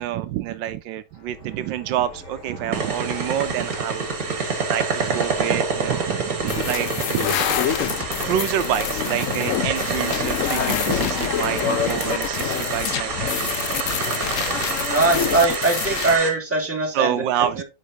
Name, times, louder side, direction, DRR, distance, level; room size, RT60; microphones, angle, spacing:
voice 1, 0.0-7.3 7.8-13.5 16.9-17.6, right 11 dB, 80° right, 1.3 m, -27 dB
sound 1, 1.1-14.7, left 1 dB, 40° left, 3.9 m, -41 dB
sound 2, 2.7-16.3, right 4 dB, 50° right, 2.0 m, -27 dB
sound 3, 6.5-16.2, left 10 dB, 85° left, 0.7 m, -26 dB
voice 2, 14.9-17.2 17.6-17.7, right 3 dB, 5° right, 2.0 m, -21 dB
8.0 x 5.5 x 2.8 m
omnidirectional pair, 2.0 m